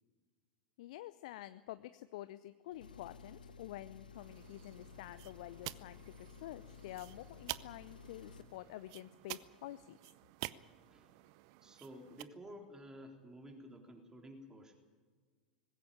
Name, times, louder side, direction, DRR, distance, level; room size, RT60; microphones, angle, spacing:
voice 1, 0.8-10.0, left 15 dB, 55° left, 13 dB, 0.6 m, -49 dB
Engine, 2.7-8.6, left 5 dB, 75° left, 1.1 m, -55 dB
sound 1, 4.1-12.2, right 18 dB, 50° right, 0.7 m, -50 dB
voice 2, 10.9-11.3 11.6-14.7, equal, 15° right, 2 dB, 3.7 m, -52 dB
20.0 x 16.5 x 9.0 m, 1.5 s
figure-of-eight pair, 85°, 5 cm